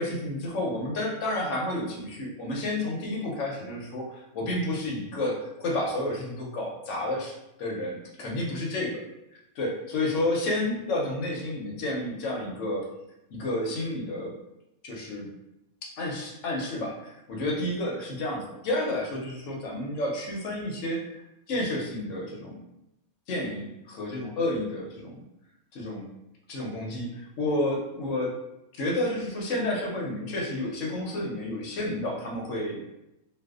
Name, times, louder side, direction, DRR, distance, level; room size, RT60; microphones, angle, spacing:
voice 1, 0.0-8.9 9.6-12.9 13.3-14.4 14.8-15.3 15.8-21.2 21.5-22.6 23.3-25.2 25.7-26.1 26.5-28.4 28.7-32.8, left 1 dB, 65° left, -1 dB, 0.8 m, -30 dB
2.5 x 2.3 x 2.3 m, 0.89 s
omnidirectional pair, 1.5 m